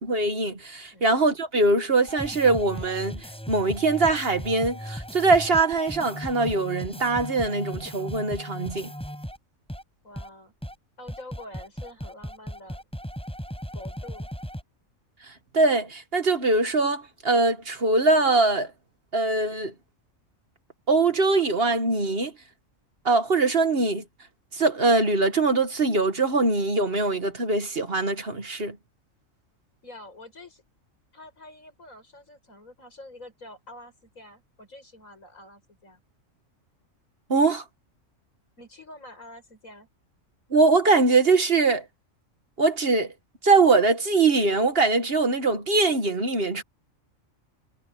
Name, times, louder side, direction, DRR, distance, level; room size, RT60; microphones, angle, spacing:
voice 1, 0.0-8.9 15.5-18.7 19.1-19.7 20.9-22.3 23.0-24.0 24.5-28.8 37.3-37.6 40.5-41.8 42.6-43.1 43.4-46.6, right 3 dB, 45° right, 1.7 m, -22 dB
sound 1, 2.0-9.4 9.7-9.8 10.2-10.3 10.6-10.7 11.1-14.6, equal, 5° left, 6.9 m, -37 dB
voice 2, 10.0-10.5 11.0-12.8 13.7-14.3 29.8-30.6 31.1-36.0 38.6-39.9, left 1 dB, 80° left, 7.7 m, -46 dB
omnidirectional pair, 1.4 m